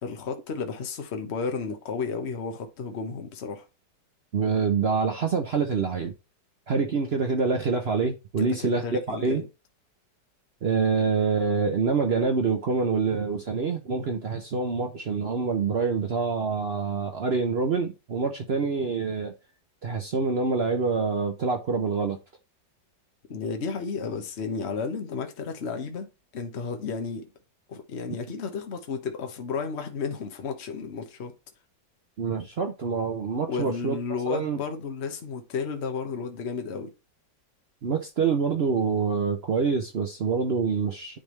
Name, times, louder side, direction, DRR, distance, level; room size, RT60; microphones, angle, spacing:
voice 1, 0.0-3.7 8.4-9.5 23.3-27.3 27.7-31.3 33.5-36.9, left 5 dB, 45° left, 1.2 m, -33 dB
voice 2, 4.3-6.1 6.7-9.4 10.6-19.3 19.8-22.2 32.2-34.0 34.3-34.6 37.8-41.2, right 5 dB, 55° right, 0.7 m, -26 dB
10.0 x 3.5 x 3.2 m
omnidirectional pair, 1.9 m